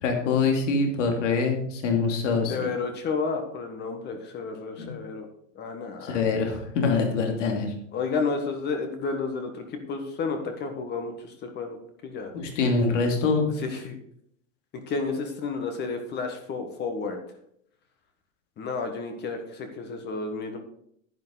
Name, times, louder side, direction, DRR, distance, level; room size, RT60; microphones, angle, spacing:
voice 1, 0.0-2.5 4.8-4.9 6.0-7.7 12.3-13.5, left 4 dB, 65° left, 3 dB, 2.8 m, -24 dB
voice 2, 2.5-5.3 5.5-6.2 7.9-12.3 13.6-14.0 14.7-17.2 18.6-20.6, left 4 dB, 25° left, 5 dB, 1.4 m, -31 dB
10.5 x 8.9 x 4.0 m, 0.70 s
hypercardioid pair, 135°, 40 cm